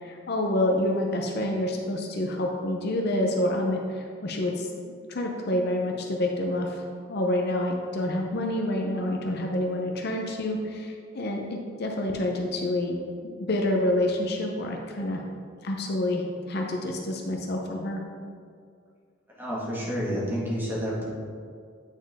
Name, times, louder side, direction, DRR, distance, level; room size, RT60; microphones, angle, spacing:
voice 1, 0.0-13.0 13.4-15.2 15.6-18.0, left 1 dB, 55° left, 1 dB, 0.7 m, -28 dB
voice 2, 19.4-21.1, equal, 10° right, -7 dB, 1.6 m, -29 dB
8.9 x 4.4 x 3.5 m, 2.2 s
head